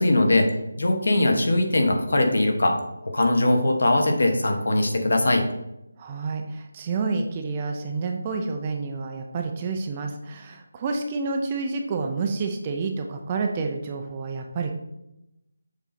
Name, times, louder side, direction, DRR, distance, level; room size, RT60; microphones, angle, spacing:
voice 1, 0.0-2.8 3.0-5.4, left 1 dB, 65° left, 4 dB, 1.3 m, -21 dB
voice 2, 6.0-14.7, right 4 dB, 15° right, 3 dB, 0.4 m, -29 dB
6.9 x 4.0 x 4.3 m, 0.86 s
figure-of-eight pair, 180°, 0 cm